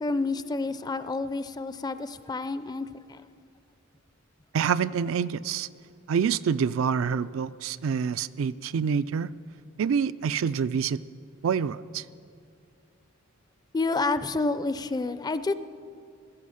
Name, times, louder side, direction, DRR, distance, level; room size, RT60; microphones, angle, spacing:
voice 1, 0.0-3.2 13.7-15.5, left 3 dB, 20° left, 13 dB, 0.4 m, -29 dB
voice 2, 4.5-5.7 6.1-9.3 9.8-11.0 11.4-12.0, right 6 dB, 70° right, 15 dB, 0.4 m, -27 dB
15.5 x 14.0 x 6.4 m, 2.4 s
head